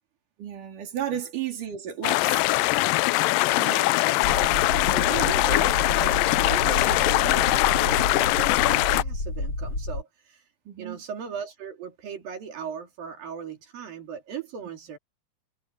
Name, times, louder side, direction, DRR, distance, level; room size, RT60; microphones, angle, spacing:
voice 1, 0.4-2.4 10.7-11.0, right 9 dB, 65° right, 5.2 m, -33 dB
sound 1, 2.0-9.0, left 20 dB, 85° left, 2.2 m, -22 dB
voice 2, 3.5-4.7 4.9-10.4 10.8-15.0, right 7 dB, 85° right, 5.0 m, -38 dB
sound 2, 4.2-10.0, left 2 dB, 35° left, 8.7 m, -30 dB
omnidirectional pair, 3.9 m